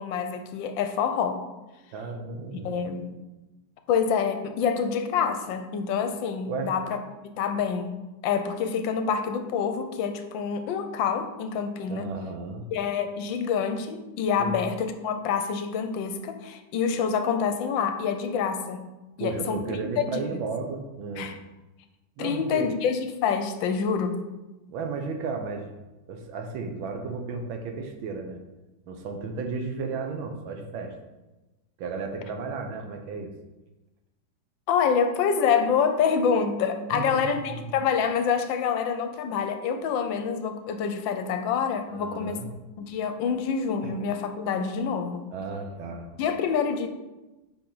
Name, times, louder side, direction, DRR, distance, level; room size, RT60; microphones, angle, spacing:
voice 1, 0.0-1.4 2.5-3.1 3.9-7.0 7.2-12.1 12.7-18.9 19.2-19.7 20.1-20.4 21.2-21.4 22.2-24.3 34.7-42.4 42.8-45.3 46.2-46.9, left 6 dB, 80° left, 8 dB, 1.3 m, -27 dB
voice 2, 1.9-2.7 6.5-6.7 11.9-12.6 14.4-14.6 19.2-21.3 22.2-22.7 24.7-25.7 26.1-28.4 28.9-30.9 31.8-33.3 36.9-37.8 41.9-42.5 43.8-43.9 45.3-46.2, right 4 dB, 90° right, 4 dB, 1.6 m, -34 dB
7.1 x 5.0 x 3.9 m, 1.1 s
omnidirectional pair, 2.1 m